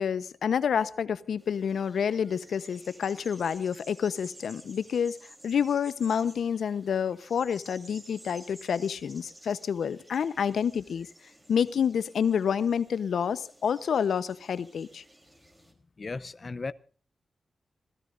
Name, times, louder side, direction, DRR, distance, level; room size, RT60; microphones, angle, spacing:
voice 1, 0.0-5.2 5.4-11.1 11.5-15.0, left 7 dB, 90° left, 1.0 m, -28 dB
sound 1, 1.4-15.7, right 1 dB, 15° right, 3.7 m, -53 dB
voice 2, 16.0-16.7, left 3 dB, 35° left, 0.7 m, -35 dB
26.5 x 17.0 x 2.6 m
wide cardioid pair, 135°, 0 cm